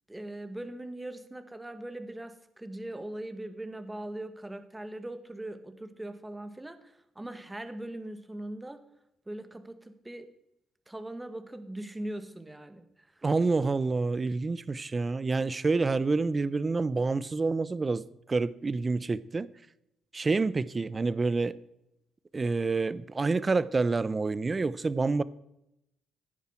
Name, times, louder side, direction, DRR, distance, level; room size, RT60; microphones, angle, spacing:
voice 1, 0.1-8.8 9.3-10.3 10.9-13.2, right 1 dB, 10° right, 1.4 m, -40 dB
voice 2, 13.2-19.5 20.1-21.6 22.3-25.2, right 3 dB, 30° right, 0.6 m, -28 dB
15.5 x 10.0 x 4.5 m
cardioid pair, 90°, 0 cm